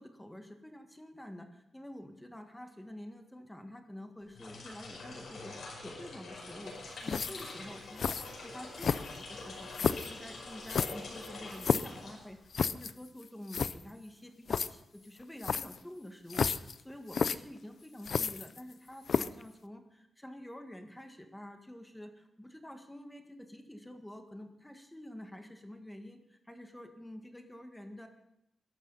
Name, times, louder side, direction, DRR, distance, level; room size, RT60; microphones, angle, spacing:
voice 1, 0.0-6.8 7.0-8.2 8.4-28.1, left 1 dB, 10° left, 5 dB, 1.8 m, -48 dB
sound 1, 4.2-12.7, left 3 dB, 80° left, 5.2 m, -45 dB
sound 2, 7.1-7.5 8.0-8.3 8.8-9.3 9.7-10.1 10.7-12.0 12.5-12.9 13.2-13.3 13.5-13.7 14.5-14.7 15.4-15.8 16.3-16.7 17.1-17.4 18.0-18.7 19.1-19.4, left 6 dB, 65° left, 0.5 m, -31 dB
21.5 x 12.0 x 4.1 m, 0.79 s
wide cardioid pair, 110°, 0 cm